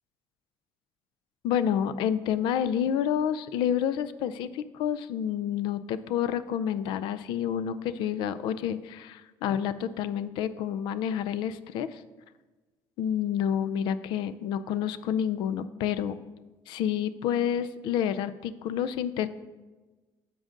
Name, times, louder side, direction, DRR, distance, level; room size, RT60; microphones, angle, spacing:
voice 1, 1.4-12.0 13.0-16.2 16.7-19.3, left 9 dB, 75° left, 13 dB, 0.4 m, -29 dB
10.5 x 7.6 x 2.5 m, 1.2 s
cardioid pair, 165°, 8 cm